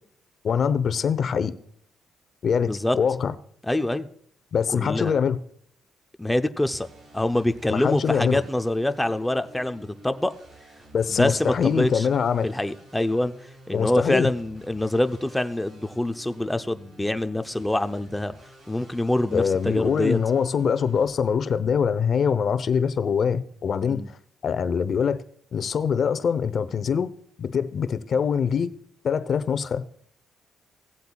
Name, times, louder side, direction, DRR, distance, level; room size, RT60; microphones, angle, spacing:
voice 1, 0.4-1.5 2.4-3.3 4.5-5.4 7.7-8.4 10.9-12.5 13.7-14.3 19.3-24.0 24.4-25.2 25.5-27.1 27.4-28.7 29.0-29.8, left 7 dB, 55° left, 0.8 m, -23 dB
voice 2, 3.6-4.1 4.7-5.1 6.2-6.9 7.1-10.3 11.1-12.1 12.4-13.3 13.7-18.3 18.7-20.2 23.9-24.1, left 1 dB, 5° left, 0.7 m, -25 dB
sound 1, 6.7-21.1, right 1 dB, 65° right, 3.8 m, -51 dB
17.0 x 8.1 x 2.4 m
cardioid pair, 90°, 0 cm